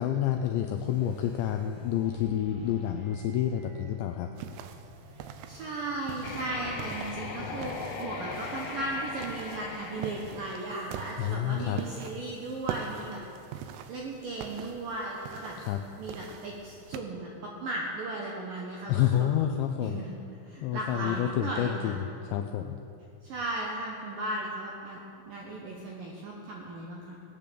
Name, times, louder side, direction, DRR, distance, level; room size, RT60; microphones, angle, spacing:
voice 1, 0.0-4.3 11.2-11.8 15.6-15.8 18.9-20.0 20.6-21.9 22.2-22.8, left 11 dB, 85° left, 5 dB, 2.5 m, -29 dB
sound 1, 0.7-12.1 12.5-12.7 13.3-13.4, equal, 50° right, 5.1 m, -51 dB
sound 2, 4.4-17.0, right 8 dB, 90° right, 2.3 m, -43 dB
voice 2, 5.2-13.2 13.9-15.5 16.0-19.3 19.8-20.2 20.5-22.0 23.2-27.2, right 2 dB, 70° right, -2 dB, 2.1 m, -36 dB
sound 3, 6.2-11.1, left 4 dB, 65° left, 3.1 m, -39 dB
17.5 x 9.2 x 6.8 m, 2.6 s
omnidirectional pair, 5.7 m